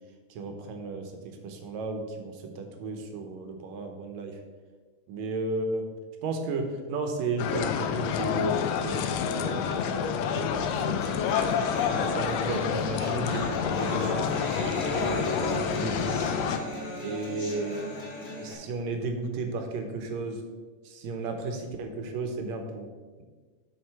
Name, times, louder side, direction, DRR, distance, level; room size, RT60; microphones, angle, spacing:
voice 1, 0.3-4.4 5.1-5.8 6.2-10.1 10.3-11.2 12.1-14.4 14.7-16.3 17.0-17.8 18.4-20.4 20.8-22.9, right 3 dB, 70° right, 5 dB, 2.1 m, -34 dB
sound 1, 7.4-16.6, left 7 dB, 80° left, 1.5 m, -28 dB
sound 2, 10.5-18.5, equal, 40° left, 0.9 m, -36 dB
7.5 x 6.1 x 4.7 m, 1.4 s
omnidirectional pair, 3.5 m